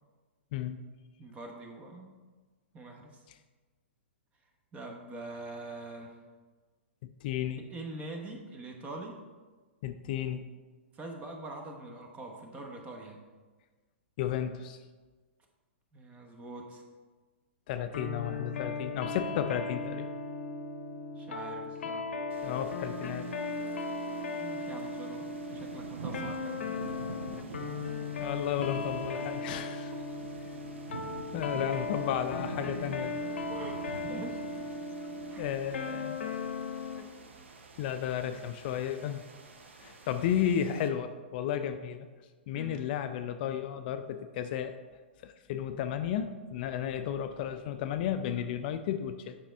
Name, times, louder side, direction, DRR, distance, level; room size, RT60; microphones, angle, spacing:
voice 1, 1.2-2.1 2.7-3.2 4.7-6.2 7.7-9.2 10.9-13.2 15.9-16.8 21.1-22.1 24.4-26.7 29.9-30.0 33.5-34.4 35.3-35.4 42.5-42.8, right 2 dB, 20° right, 2 dB, 1.0 m, -44 dB
voice 2, 7.0-7.6 9.8-10.4 14.2-14.8 17.7-20.1 22.4-23.3 28.2-29.9 31.3-33.1 35.3-36.2 37.8-39.2 39.8-42.1 42.5-44.7 45.2-49.4, left 9 dB, 50° left, 8 dB, 0.4 m, -33 dB
sound 1, 17.9-37.1, left 3 dB, 75° left, 0.7 m, -37 dB
sound 2, 22.3-40.9, right 4 dB, 75° right, 0.8 m, -47 dB
7.2 x 5.1 x 3.4 m, 1.4 s
hypercardioid pair, 120°, 6 cm